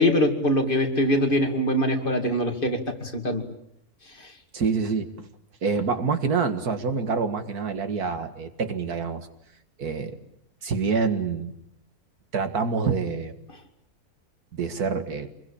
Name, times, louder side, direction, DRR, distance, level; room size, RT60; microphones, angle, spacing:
voice 1, 0.0-3.4 4.2-4.3, left 1 dB, 35° left, 4 dB, 2.6 m, -23 dB
voice 2, 4.5-5.3 5.6-9.3 9.8-10.2 10.6-11.5 12.3-13.3 14.5-15.3, right 5 dB, 85° right, 8 dB, 2.3 m, -26 dB
27.0 x 21.5 x 8.7 m, 0.76 s
omnidirectional pair, 1.6 m